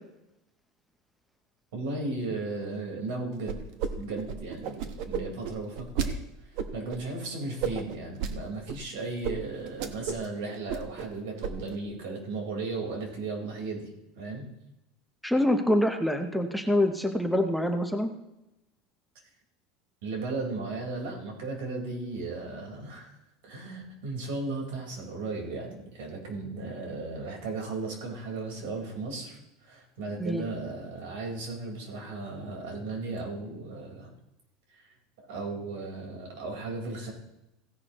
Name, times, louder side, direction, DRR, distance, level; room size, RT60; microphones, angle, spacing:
voice 1, 1.7-3.6 3.8-6.2 6.7-13.9 14.2-14.5 20.0-23.2 23.4-34.1 35.2-37.1, right 3 dB, 80° right, 0 dB, 4.1 m, -35 dB
sound 1, 3.5-6.1 6.6-7.0 7.6-8.3 8.7-8.8 9.2-9.3 9.7-10.3 10.5-11.1 11.4-11.8, right 7 dB, 55° right, 1.0 m, -32 dB
voice 2, 15.2-18.1 30.2-30.5, left 1 dB, ahead, 6 dB, 0.7 m, -25 dB
16.5 x 10.5 x 3.0 m, 0.90 s
cardioid pair, 170°, 0 cm